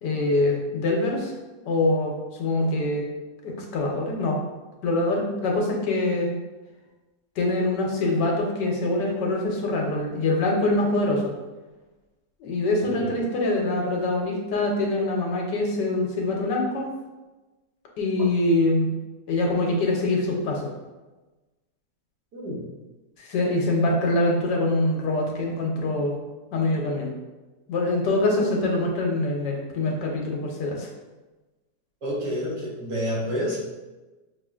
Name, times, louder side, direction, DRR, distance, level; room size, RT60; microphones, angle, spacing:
voice 1, 0.0-1.3 1.6-3.1 3.4-4.4 4.8-6.3 7.4-11.3 12.4-16.9 18.0-18.9 19.3-20.7 23.2-26.1 26.5-27.1 27.7-30.9, left 2 dB, 85° left, 0 dB, 1.4 m, -24 dB
voice 2, 22.3-22.6 32.0-33.6, equal, 80° right, -5 dB, 1.6 m, -28 dB
5.6 x 2.4 x 2.4 m, 1.2 s
omnidirectional pair, 1.8 m